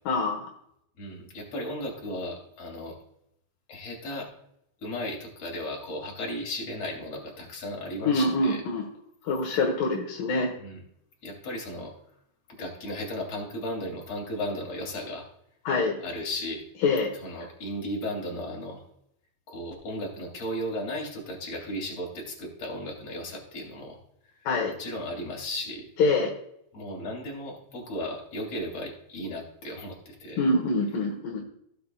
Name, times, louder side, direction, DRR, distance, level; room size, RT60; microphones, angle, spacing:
voice 1, 0.1-0.5 8.1-8.9 9.2-10.5 15.7-16.0 16.8-17.1 24.5-24.7 26.0-26.3 30.4-31.4, left 3 dB, 75° left, 0 dB, 2.1 m, -25 dB
voice 2, 1.0-3.0 3.7-4.3 4.8-8.6 10.6-10.8 11.2-11.9 12.5-15.3 16.0-16.6 17.1-18.8 19.5-24.0 24.7-25.9 26.7-30.4, left 1 dB, 35° left, 0 dB, 3.1 m, -35 dB
16.5 x 7.6 x 2.3 m, 0.74 s
omnidirectional pair, 5.8 m